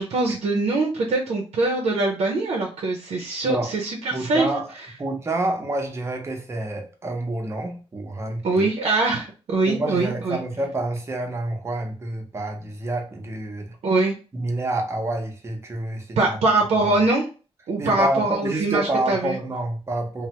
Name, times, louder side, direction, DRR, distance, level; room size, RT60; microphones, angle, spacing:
voice 1, 0.0-4.6 8.4-10.4 13.8-14.1 16.2-17.3 17.7-19.4, right 2 dB, 80° right, 0.6 m, -23 dB
voice 2, 4.1-4.6 5.0-8.7 9.7-13.7 14.3-16.4 16.8-16.9 17.8-20.3, right 2 dB, 25° right, 0.7 m, -28 dB
3.2 x 2.1 x 2.8 m
wide cardioid pair, 140°, 10 cm